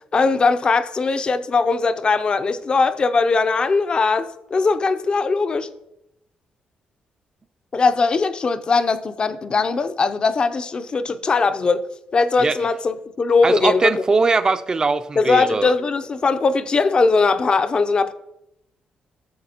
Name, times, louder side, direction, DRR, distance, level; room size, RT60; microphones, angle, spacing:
voice 1, 0.1-5.7 7.7-11.8 12.1-14.0 15.2-18.1, left 4 dB, 35° left, 0.5 m, -20 dB
voice 2, 13.4-15.7, right 4 dB, 25° right, 0.4 m, -20 dB
11.0 x 7.2 x 2.9 m
cardioid pair, 130°, 3 cm